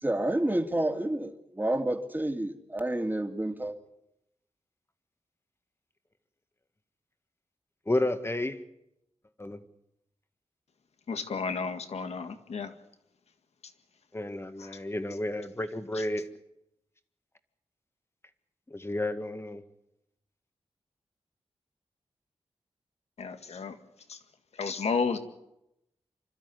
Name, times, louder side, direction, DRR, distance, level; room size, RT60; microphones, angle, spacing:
voice 1, 0.0-3.7, right 1 dB, 20° right, 5 dB, 2.5 m, -29 dB
voice 2, 7.9-8.6 9.4-9.6 14.1-16.3 18.7-19.6, left 1 dB, 25° left, 9 dB, 1.9 m, -31 dB
voice 3, 11.1-12.7 14.6-14.8 23.2-23.8 24.1-24.2 24.6-25.2, left 5 dB, 85° left, 8 dB, 1.8 m, -32 dB
26.5 x 12.5 x 9.5 m, 0.85 s
cardioid pair, 55°, 11 cm